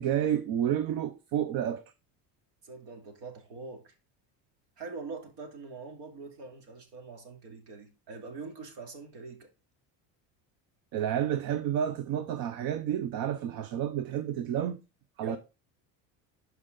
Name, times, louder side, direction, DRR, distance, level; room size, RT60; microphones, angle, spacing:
voice 1, 0.0-1.8 10.9-14.8 15.2-15.4, right 10 dB, 60° right, 0.8 m, -30 dB
voice 2, 2.6-3.9 4.8-9.5 15.2-15.4, right 3 dB, 75° right, 2.7 m, -43 dB
12.0 x 4.8 x 3.9 m
cardioid pair, 130°, 40 cm